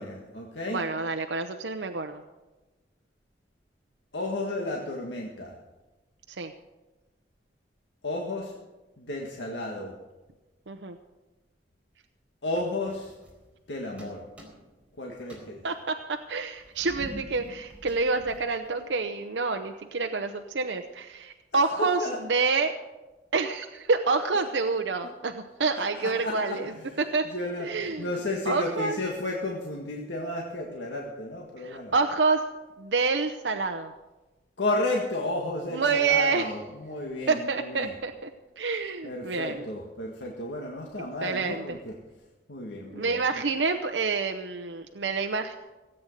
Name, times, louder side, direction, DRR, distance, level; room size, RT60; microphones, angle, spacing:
voice 1, 0.0-0.8 4.1-5.6 8.0-8.6 9.0-9.9 12.4-13.1 13.7-14.2 15.0-15.6 21.7-22.2 26.0-27.7 28.0-31.9 34.6-37.9 39.0-42.0 42.5-43.4, left 2 dB, 90° left, -1 dB, 1.8 m, -33 dB
voice 2, 0.7-2.2 6.4-6.5 10.7-11.0 15.6-16.0 16.3-22.7 23.3-26.7 27.0-27.3 27.6-28.1 28.5-29.0 31.6-32.4 32.8-33.9 35.7-36.5 37.3-38.3 38.6-39.6 41.2-41.8 42.9-45.6, right 4 dB, 85° right, 5 dB, 0.8 m, -27 dB
sound 1, 12.5-13.7 14.0-14.9 15.2-19.0, equal, 10° right, 4.3 m, -47 dB
17.5 x 8.8 x 6.6 m, 1.1 s
head